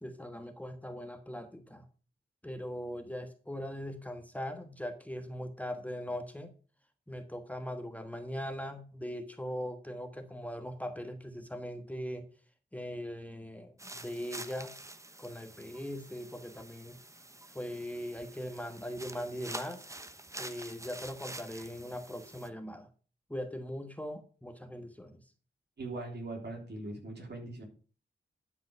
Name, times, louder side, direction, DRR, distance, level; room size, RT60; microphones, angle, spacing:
voice 1, 0.0-1.8 2.4-6.5 7.1-12.3 12.7-14.7 15.2-17.0 17.5-19.8 20.4-22.9 23.3-25.2, equal, 10° left, 7 dB, 1.3 m, -40 dB
sound 1, 13.8-22.5, right 2 dB, 15° right, 0.9 m, -47 dB
voice 2, 25.8-27.6, right 2 dB, 60° right, 1 dB, 3.6 m, -40 dB
12.0 x 5.1 x 5.4 m, 0.39 s
cardioid pair, 65°, 19 cm